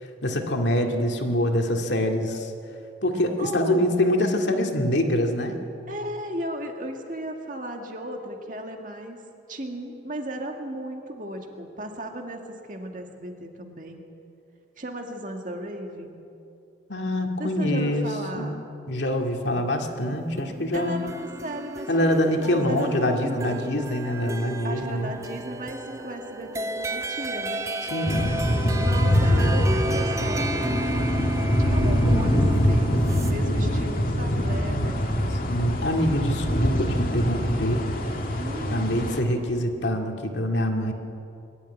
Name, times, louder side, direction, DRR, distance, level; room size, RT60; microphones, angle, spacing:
voice 1, 0.2-2.5 3.0-5.6 16.9-18.1 18.3-18.5 18.9-21.0 21.9-25.1 27.9-28.3 35.5-37.8 38.7-40.9, left 1 dB, 75° left, 3 dB, 2.2 m, -25 dB
voice 2, 3.4-4.0 5.9-9.2 9.5-12.4 12.7-14.0 14.8-16.2 17.4-18.6 20.7-23.6 24.6-27.7 28.8-30.9 31.6-35.4 38.4-39.0, right 1 dB, 45° right, 3 dB, 2.1 m, -35 dB
sound 1, 20.4-33.3, right 2 dB, 15° right, 0.6 m, -33 dB
sound 2, 28.1-39.2, equal, 50° left, 2.1 m, -24 dB
22.5 x 12.5 x 9.4 m, 2.7 s
head